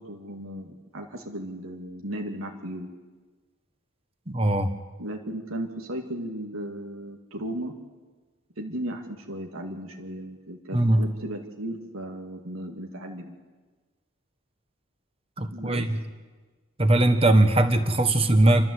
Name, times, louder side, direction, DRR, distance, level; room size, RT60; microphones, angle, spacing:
voice 1, 0.0-2.9 5.0-7.7 8.6-13.4 15.5-15.9, right 1 dB, 85° right, 2 dB, 2.1 m, -35 dB
voice 2, 4.3-4.7 10.7-11.0 15.4-16.0 16.8-18.7, right 1 dB, 25° right, 8 dB, 1.4 m, -20 dB
28.5 x 12.5 x 7.9 m, 1.4 s
head